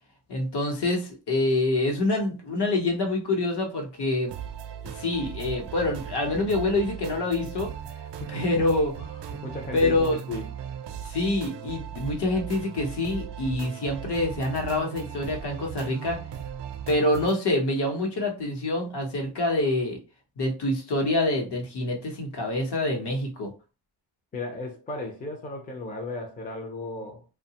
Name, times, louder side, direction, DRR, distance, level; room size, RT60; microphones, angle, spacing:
voice 1, 0.3-4.3 4.9-7.7 8.3-9.4 9.7-10.2 11.0-16.2 16.9-20.0 20.4-23.5, left 2 dB, 60° left, 0.9 m, -26 dB
sound 1, 4.3-17.4, right 9 dB, 65° right, 0.5 m, -38 dB
voice 2, 9.4-10.5 24.3-27.2, left 2 dB, 20° left, 0.4 m, -35 dB
2.7 x 2.2 x 2.8 m
wide cardioid pair, 170°, 44 cm